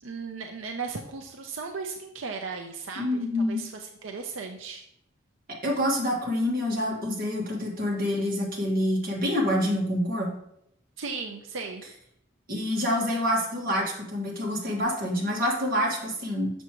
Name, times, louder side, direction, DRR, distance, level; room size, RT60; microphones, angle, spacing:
voice 1, 0.0-4.8 11.0-11.8, right 4 dB, 90° right, 3 dB, 0.6 m, -36 dB
voice 2, 3.0-3.6 5.6-10.3 12.5-16.5, left 1 dB, 50° right, -2 dB, 1.9 m, -27 dB
6.7 x 6.3 x 3.0 m, 0.75 s
head